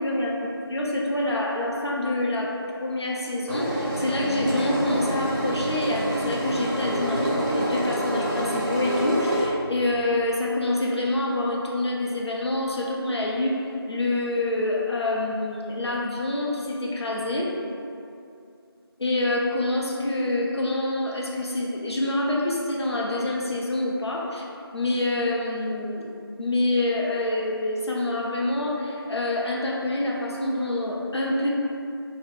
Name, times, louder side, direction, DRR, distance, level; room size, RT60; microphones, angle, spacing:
voice 1, 0.0-17.5 19.0-24.4 24.7-26.1 26.4-31.5, left 2 dB, 85° left, -3 dB, 0.6 m, -26 dB
Engine, 3.5-9.5, right 1 dB, 40° right, 0.6 m, -27 dB
2.5 x 2.2 x 3.6 m, 2.5 s
figure-of-eight pair, 175°, 13 cm